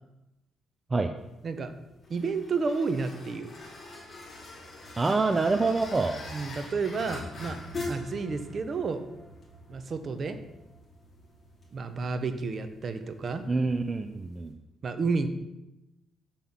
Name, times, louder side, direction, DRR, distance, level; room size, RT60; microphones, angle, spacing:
sound 1, 1.2-14.5, left 2 dB, 30° left, 2.9 m, -44 dB
voice 1, 2.1-3.5 6.3-7.6 7.9-9.0 9.7-10.4 11.7-13.4 14.8-15.3, right 4 dB, 45° right, 9 dB, 0.8 m, -31 dB
voice 2, 5.0-6.2 13.5-14.5, right 3 dB, 25° right, 7 dB, 0.5 m, -26 dB
7.0 x 5.6 x 6.0 m, 0.94 s
cardioid pair, 90°, 0 cm